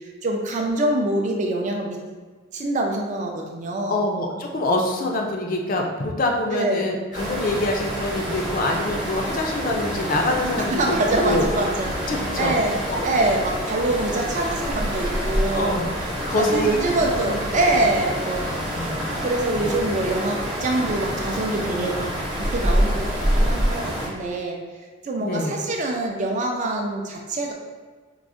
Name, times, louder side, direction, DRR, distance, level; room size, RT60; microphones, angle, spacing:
voice 1, 0.2-2.0 2.5-4.0 6.5-6.9 10.6-12.8 13.0-15.8 16.4-18.5 19.2-22.1 22.3-24.6 25.0-27.5, right 2 dB, 35° right, 1 dB, 0.4 m, -24 dB
voice 2, 3.9-11.0 11.2-11.4 12.1-12.6 12.9-13.1 15.5-15.9 16.3-16.8 17.2-17.3 18.5-19.0 25.2-25.5, left 2 dB, 40° left, 2 dB, 0.4 m, -25 dB
sound 1, 7.1-24.1, equal, 20° right, 0.8 m, -27 dB
4.5 x 2.1 x 2.5 m, 1.5 s
head